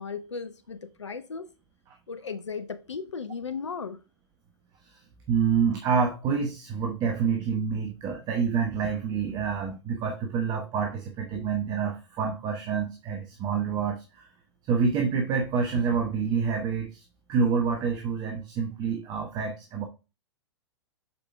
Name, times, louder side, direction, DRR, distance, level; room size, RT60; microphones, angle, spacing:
voice 1, 0.0-1.5 2.1-4.0 11.3-11.5, left 5 dB, 75° left, 0.6 m, -36 dB
voice 2, 5.3-14.3 14.6-19.8, right 6 dB, 25° right, 1.1 m, -27 dB
6.9 x 5.0 x 3.4 m
figure-of-eight pair, 105°, 15 cm